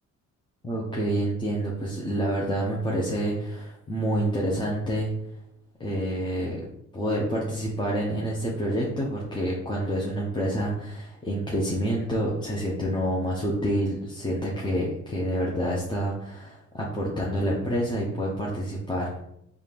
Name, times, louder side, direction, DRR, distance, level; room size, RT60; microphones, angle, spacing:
voice 1, 0.6-5.1 5.8-6.6 6.9-19.2, equal, 15° left, -4 dB, 0.8 m, -28 dB
4.0 x 2.5 x 3.4 m, 0.77 s
cardioid pair, 90°, 30 cm